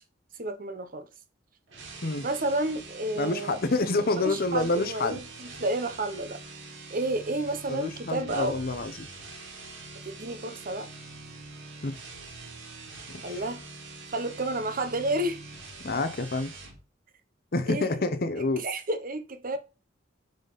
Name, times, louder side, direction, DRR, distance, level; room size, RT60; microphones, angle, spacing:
voice 1, 0.3-1.1 2.2-3.6 4.2-6.4 6.9-8.6 10.0-10.9 13.2-13.6 14.1-15.6 17.7-18.1 18.6-19.6, right 2 dB, 45° right, 0.9 m, -31 dB
sound 1, 1.7-16.8, right 3 dB, 75° right, 2.5 m, -44 dB
voice 2, 3.2-5.2 7.7-9.1 11.8-12.0 13.3-13.4 15.8-16.5 17.5-18.7, left 2 dB, 50° left, 0.8 m, -28 dB
8.5 x 4.1 x 4.0 m
head